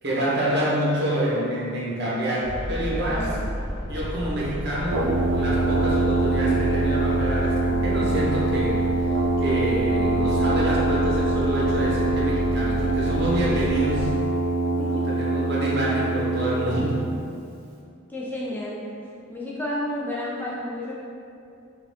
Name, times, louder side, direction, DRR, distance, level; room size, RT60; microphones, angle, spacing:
voice 1, 0.0-3.4 3.9-14.1 14.9-17.0, right 1 dB, 55° right, -6 dB, 0.9 m, -27 dB
sound 1, 2.4-14.1, equal, 90° left, 0.8 m, -32 dB
Brass instrument, 4.9-17.2, right 2 dB, 90° right, 0.6 m, -24 dB
voice 2, 18.1-18.8 19.3-21.0, left 1 dB, 10° left, -6 dB, 0.4 m, -31 dB
4.9 x 2.4 x 3.5 m, 2.5 s
head